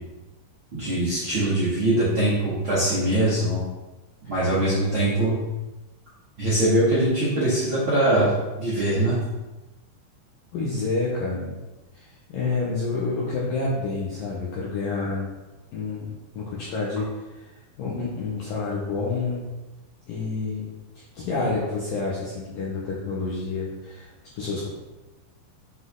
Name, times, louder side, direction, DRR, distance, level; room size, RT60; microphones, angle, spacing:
voice 1, 0.7-3.6 4.3-5.4 6.4-8.3 8.6-9.2, right 1 dB, 50° right, -10 dB, 1.5 m, -22 dB
voice 2, 10.5-11.5 11.9-15.3 15.7-17.5 17.8-19.5 20.1-20.7 20.9-24.7, left 3 dB, 70° left, -6 dB, 2.1 m, -29 dB
8.0 x 6.0 x 3.9 m, 1.1 s
omnidirectional pair, 5.6 m